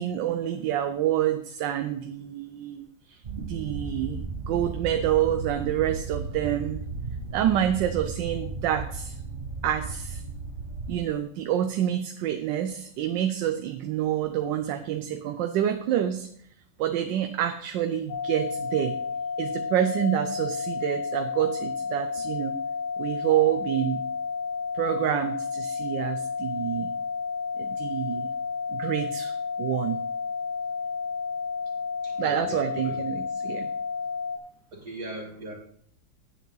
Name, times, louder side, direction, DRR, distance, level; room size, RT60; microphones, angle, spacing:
voice 1, 0.0-6.8 7.3-9.2 9.6-10.2 10.9-16.3 16.8-19.0 19.4-22.6 23.0-24.0 24.7-26.9 27.6-28.3 28.7-29.3 29.6-30.0 32.2-33.7, right 11 dB, 85° right, 7 dB, 1.3 m, -27 dB
sound 1, 3.2-10.9, right 4 dB, 40° right, 0.9 m, -35 dB
sound 2, 18.1-34.4, left 5 dB, 70° left, 1.4 m, -31 dB
voice 2, 32.0-33.0 34.7-35.5, right 1 dB, 65° right, -6 dB, 2.5 m, -40 dB
9.1 x 8.4 x 3.9 m, 0.65 s
omnidirectional pair, 1.9 m